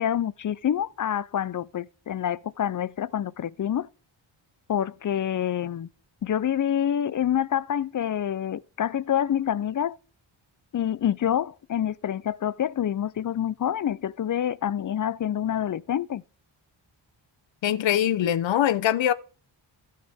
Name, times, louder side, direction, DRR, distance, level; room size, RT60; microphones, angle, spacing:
voice 1, 0.0-3.9 4.7-5.9 6.2-10.0 10.7-16.2, left 10 dB, 45° left, 0.5 m, -27 dB
voice 2, 17.6-19.1, left 11 dB, 70° left, 0.8 m, -22 dB
15.5 x 6.6 x 3.6 m
wide cardioid pair, 115°, 46 cm